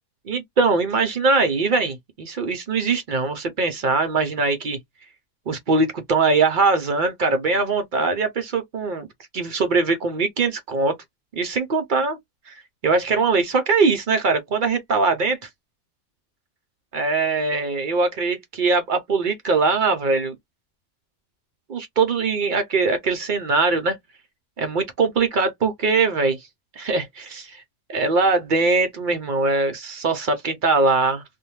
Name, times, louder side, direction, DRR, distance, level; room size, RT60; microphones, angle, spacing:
voice 1, 0.3-4.8 5.5-9.1 9.3-11.0 11.4-12.2 12.5-12.6 12.8-15.5 16.9-20.3 21.7-24.0 24.6-26.4 26.8-27.6 27.9-31.2, right 4 dB, 75° right, 0.4 m, -21 dB
2.6 x 2.1 x 2.9 m
omnidirectional pair, 1.6 m